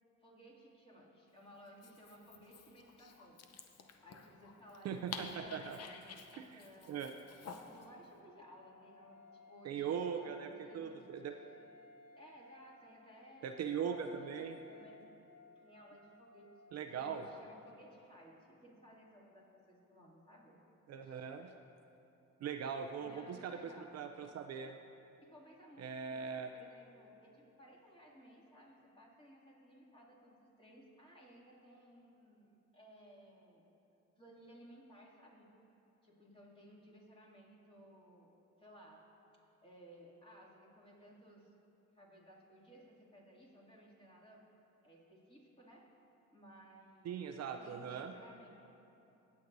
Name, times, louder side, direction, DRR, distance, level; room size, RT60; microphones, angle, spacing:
voice 1, 0.2-7.0 7.5-11.1 12.2-15.2 15.6-20.6 21.0-21.3 23.0-24.0 25.2-33.6 34.2-35.5 36.0-38.3 38.6-39.1 39.6-41.5 41.9-44.5 44.8-45.9 46.3-48.5, equal, 15° left, -5 dB, 2.4 m, -59 dB
Dog, 1.7-7.9, left 5 dB, 55° left, 0.8 m, -51 dB
voice 2, 4.8-5.8 6.3-6.6 6.9-7.1 9.6-11.3 13.4-14.6 16.7-17.3 20.9-21.5 22.4-23.6 23.9-24.7 25.8-26.5 47.0-48.1, right 7 dB, 60° right, 5 dB, 0.5 m, -40 dB
Wind instrument woodwind instrument, 7.4-17.4, left 2 dB, 75° left, 1.6 m, -61 dB
18.0 x 8.4 x 2.6 m, 3.0 s
cardioid pair, 90°, 30 cm